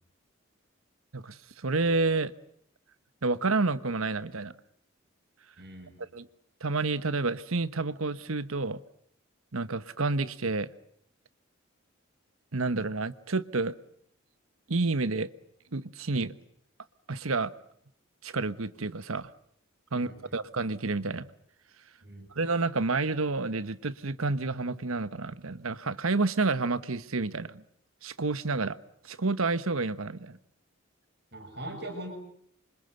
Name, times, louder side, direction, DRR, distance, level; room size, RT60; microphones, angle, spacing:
voice 1, 1.1-2.3 3.2-4.5 6.0-6.3 6.6-8.8 9.5-10.7 12.5-13.7 14.7-15.3 15.7-16.3 17.1-17.5 18.2-19.3 19.9-21.3 22.3-27.6 28.0-28.8 29.0-30.4, right 3 dB, 85° right, 13 dB, 1.2 m, -29 dB
voice 2, 5.6-5.9 19.9-20.4 22.0-22.3 31.3-32.1, right 1 dB, 50° right, 4 dB, 7.2 m, -41 dB
27.5 x 25.5 x 8.0 m, 0.68 s
head